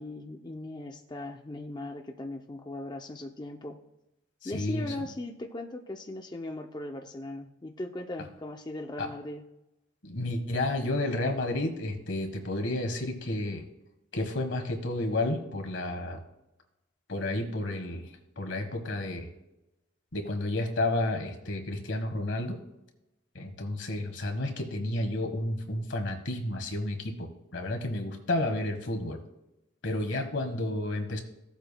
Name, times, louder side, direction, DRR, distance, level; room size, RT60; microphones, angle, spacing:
voice 1, 0.0-3.8 4.4-9.5, left 2 dB, 20° left, 3 dB, 0.5 m, -39 dB
voice 2, 4.4-4.9 9.0-9.1 10.0-13.6 14.1-16.2 17.1-18.1 18.4-19.3 20.1-22.6 23.3-29.2 29.8-31.2, left 1 dB, 70° left, 5 dB, 1.4 m, -31 dB
16.0 x 7.9 x 2.2 m, 0.91 s
head